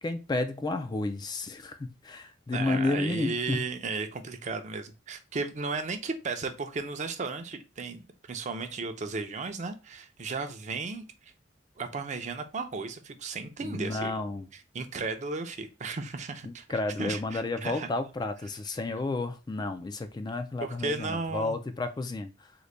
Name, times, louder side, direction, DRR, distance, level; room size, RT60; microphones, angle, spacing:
voice 1, 0.0-3.7 13.6-14.5 16.4-22.5, left 2 dB, 25° left, 0.3 m, -32 dB
voice 2, 2.5-11.3 11.8-14.1 14.5-16.6 17.0-17.9 20.6-21.6, right 4 dB, 40° right, 0.5 m, -35 dB
3.8 x 2.2 x 3.2 m
head